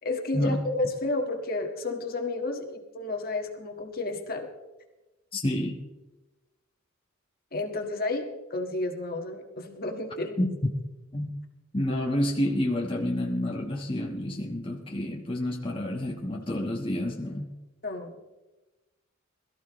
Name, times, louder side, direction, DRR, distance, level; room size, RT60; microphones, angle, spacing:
voice 1, 0.0-4.5 7.5-10.4 17.8-18.2, left 2 dB, 45° left, 3 dB, 1.7 m, -31 dB
voice 2, 5.3-5.8 10.4-10.5 11.1-11.3 11.7-17.5, left 1 dB, 25° left, 0 dB, 1.3 m, -29 dB
22.0 x 14.0 x 3.1 m, 1.1 s
head